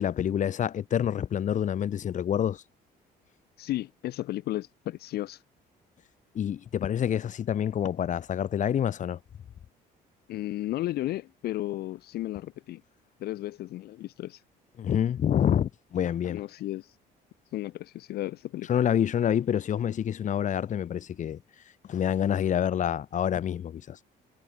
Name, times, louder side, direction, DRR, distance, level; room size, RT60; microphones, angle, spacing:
voice 1, 0.0-2.6 6.3-9.2 14.8-16.4 18.7-21.4 21.9-24.0, left 9 dB, 45° left, 1.5 m, -27 dB
voice 2, 3.6-5.4 10.3-12.8 13.2-14.4 16.3-17.0 17.5-18.7, left 15 dB, 70° left, 0.9 m, -34 dB
cardioid pair, 110°, 17 cm